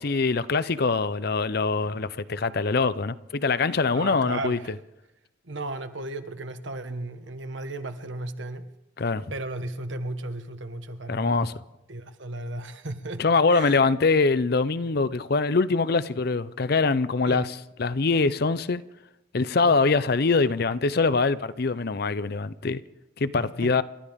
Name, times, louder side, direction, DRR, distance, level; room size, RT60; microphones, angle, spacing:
voice 1, 0.0-4.6 9.0-9.2 11.1-11.5 13.2-18.8 19.3-22.8 23.2-23.8, left 4 dB, 55° left, 0.6 m, -23 dB
voice 2, 3.9-4.8 5.4-8.7 9.3-11.5 11.9-13.9 17.3-17.5 19.6-19.9 23.4-23.8, right 2 dB, 70° right, 1.3 m, -35 dB
28.5 x 13.5 x 3.6 m
head